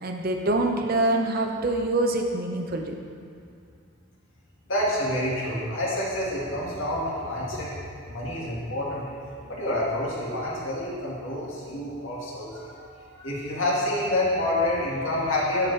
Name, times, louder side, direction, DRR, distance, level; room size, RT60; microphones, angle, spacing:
voice 1, 0.0-2.9, right 2 dB, 45° right, 3 dB, 0.6 m, -25 dB
voice 2, 4.7-7.8 8.1-9.1 9.5-15.7, left 1 dB, 70° left, -6 dB, 1.9 m, -28 dB
12.5 x 4.9 x 3.3 m, 2.4 s
head